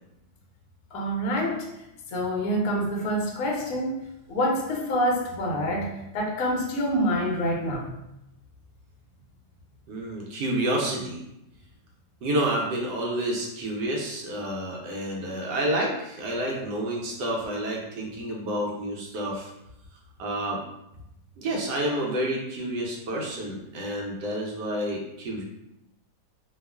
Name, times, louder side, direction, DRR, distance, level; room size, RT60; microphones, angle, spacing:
voice 1, 0.9-1.7 2.1-7.9, equal, 70° left, 0 dB, 0.8 m, -27 dB
voice 2, 9.9-11.2 12.2-19.5 20.2-20.6 21.4-25.4, right 1 dB, 75° right, -2 dB, 1.2 m, -29 dB
2.8 x 2.3 x 2.2 m, 0.85 s
omnidirectional pair, 1.9 m